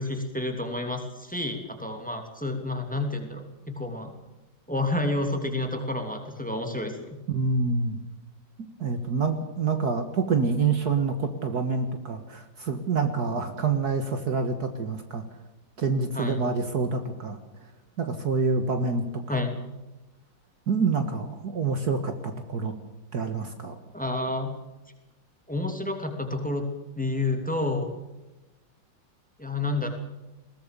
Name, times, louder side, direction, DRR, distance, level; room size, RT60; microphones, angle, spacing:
voice 1, 0.0-4.1 4.7-6.9 16.1-16.4 19.3-19.5 23.9-24.5 25.5-26.7 27.0-27.9 29.4-29.9, left 2 dB, 5° left, 4 dB, 2.9 m, -29 dB
voice 2, 7.3-8.0 8.8-15.2 15.8-17.4 18.0-19.0 20.7-22.7 23.1-23.8, right 4 dB, 55° right, 7 dB, 2.0 m, -27 dB
21.5 x 18.5 x 6.9 m, 1.0 s
omnidirectional pair, 2.1 m